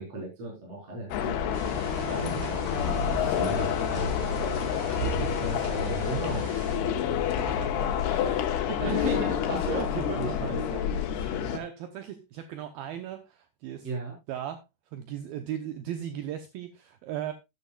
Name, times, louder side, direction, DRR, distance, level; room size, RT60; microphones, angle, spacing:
voice 1, 0.0-1.3 2.0-4.1 4.8-6.5 8.8-11.0 13.8-14.1, right 2 dB, 35° right, 5.4 m, -35 dB
sound 1, 1.1-11.6, left 8 dB, 75° left, 3.2 m, -28 dB
sound 2, 1.5-6.8, right 2 dB, 20° right, 5.8 m, -38 dB
voice 2, 7.0-9.0 9.6-13.9 14.3-17.3, right 10 dB, 75° right, 2.4 m, -38 dB
12.5 x 12.5 x 2.4 m
omnidirectional pair, 4.9 m